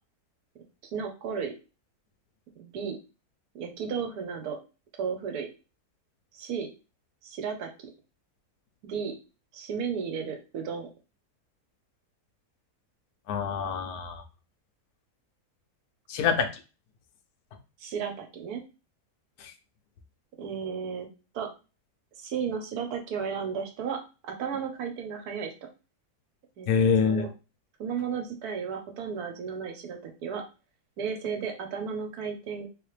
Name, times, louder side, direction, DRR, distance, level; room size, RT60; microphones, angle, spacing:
voice 1, 0.9-1.5 2.6-3.0 3.5-4.6 5.0-5.5 6.3-6.7 7.2-7.9 8.8-9.1 9.5-10.9 17.8-18.6 20.4-21.1 21.3-21.5 22.2-25.5 26.6-27.3 27.8-30.4 31.0-32.7, right 6 dB, 80° right, 5 dB, 1.2 m, -34 dB
voice 2, 13.3-14.2 16.1-16.5 19.4-19.5 26.7-27.3, left 6 dB, 75° left, 6 dB, 1.1 m, -25 dB
3.3 x 3.0 x 3.2 m, 0.32 s
omnidirectional pair, 1.7 m